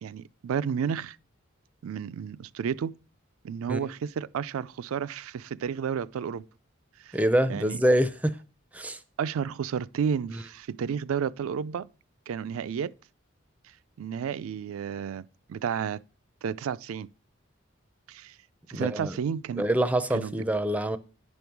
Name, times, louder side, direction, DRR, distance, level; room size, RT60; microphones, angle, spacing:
voice 1, 0.0-1.2 1.8-2.9 3.4-6.4 7.0-7.2 7.5-7.8 9.2-11.9 12.3-12.9 14.0-16.0 16.4-17.1 18.1-18.3 18.7-19.7 20.1-20.3, right 7 dB, 85° right, 0.3 m, -31 dB
voice 2, 7.1-8.4 8.7-9.0 10.3-10.4 18.7-19.1 19.6-21.0, right 1 dB, 5° right, 0.4 m, -25 dB
10.0 x 5.4 x 4.5 m
head